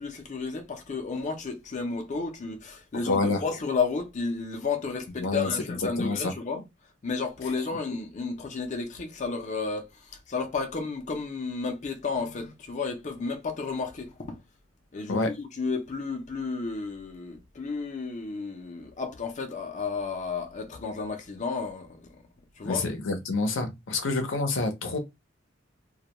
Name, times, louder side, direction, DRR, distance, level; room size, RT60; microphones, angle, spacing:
voice 1, 0.0-6.7 7.0-14.4 14.9-22.1 22.6-22.8, left 4 dB, 40° left, 0.5 m, -32 dB
voice 2, 3.0-3.4 5.2-6.3 15.1-15.3 22.7-25.0, left 3 dB, 85° left, 0.6 m, -28 dB
2.2 x 2.1 x 2.8 m
head